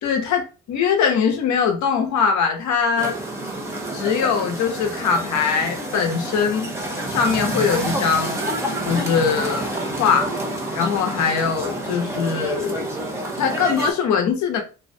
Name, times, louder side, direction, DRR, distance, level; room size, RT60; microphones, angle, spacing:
voice 1, 0.0-3.2 3.9-6.7 7.1-8.5 8.8-9.6 10.0-10.3 10.7-12.9 13.4-14.6, left 6 dB, 70° left, 0.7 m, -21 dB
sound 1, 3.0-13.9, right 1 dB, 10° right, 0.5 m, -28 dB
2.2 x 2.2 x 2.5 m
cardioid pair, 90°, 30 cm